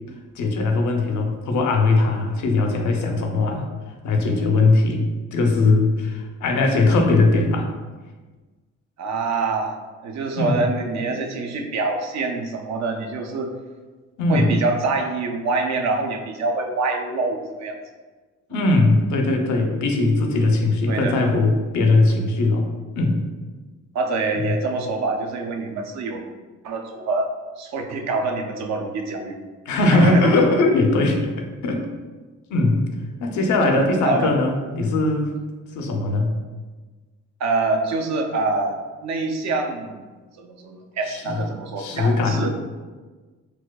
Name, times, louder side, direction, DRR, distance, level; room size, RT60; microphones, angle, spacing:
voice 1, 0.4-3.7 4.0-5.0 5.3-7.7 10.4-10.7 14.2-14.6 18.5-22.7 22.9-23.2 24.4-24.5 29.7-31.8 32.5-32.8 33.2-35.3 35.7-36.3 41.1-41.4 41.8-42.4, left 2 dB, 70° left, 3 dB, 0.6 m, -20 dB
voice 2, 9.0-13.5 14.3-17.8 18.5-18.7 20.9-21.3 23.9-26.2 26.6-29.4 29.9-30.3 34.0-34.3 37.4-40.1 40.4-42.5, right 3 dB, 65° right, 4 dB, 0.5 m, -25 dB
4.3 x 2.2 x 2.3 m, 1.3 s
cardioid pair, 90°, 30 cm